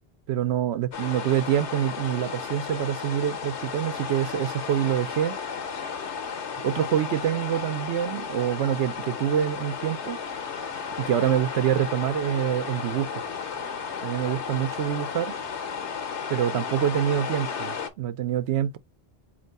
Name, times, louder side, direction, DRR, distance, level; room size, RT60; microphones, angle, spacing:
voice 1, 0.3-5.4 6.6-10.2 11.0-13.1 14.0-15.3 16.3-18.8, right 10 dB, 85° right, 0.9 m, -26 dB
sound 1, 0.9-17.9, left 6 dB, 85° left, 1.2 m, -34 dB
4.4 x 2.9 x 4.0 m
omnidirectional pair, 1.1 m